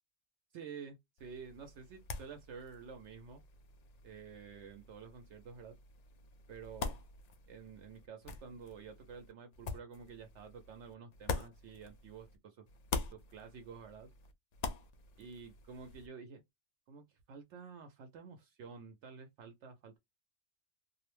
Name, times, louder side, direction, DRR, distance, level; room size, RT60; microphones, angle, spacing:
voice 1, 0.5-3.4 4.0-5.8 6.5-7.0 7.5-12.7 13.1-14.1 15.2-16.4 16.9-20.0, right 6 dB, 70° right, 0.9 m, -50 dB
sound 1, 1.2-12.4 12.7-16.1, left 4 dB, 80° left, 0.3 m, -45 dB
2.5 x 2.1 x 3.0 m
omnidirectional pair, 1.2 m